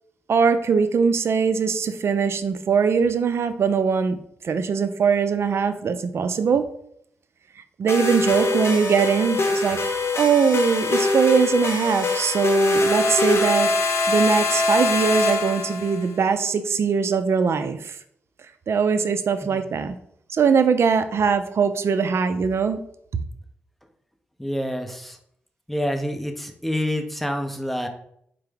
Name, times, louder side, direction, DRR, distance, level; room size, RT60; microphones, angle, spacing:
voice 1, 0.3-4.2 4.4-6.6 7.8-9.8 10.2-18.0 18.7-19.9 20.3-22.8 23.1-23.2, right 6 dB, 60° right, 10 dB, 0.4 m, -21 dB
sound 1, 7.9-16.0, left 2 dB, 55° left, 0.7 m, -23 dB
voice 2, 24.4-25.2 25.7-27.9, equal, 5° left, 4 dB, 0.6 m, -27 dB
4.5 x 2.0 x 3.3 m, 0.70 s
supercardioid pair, 50°, 5 cm